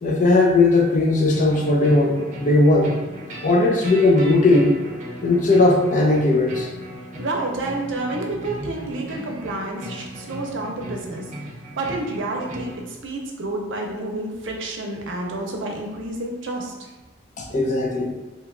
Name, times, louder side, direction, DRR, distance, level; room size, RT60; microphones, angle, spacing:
voice 1, 0.0-2.9 3.4-4.7 5.2-6.7 17.4-18.1, left 2 dB, 40° left, 0 dB, 0.5 m, -18 dB
sound 1, 1.3-12.8, equal, 40° right, 0.6 m, -37 dB
voice 2, 7.2-11.3 11.8-16.9, right 2 dB, 90° right, 1 dB, 0.6 m, -29 dB
2.8 x 2.3 x 3.7 m, 1.2 s
head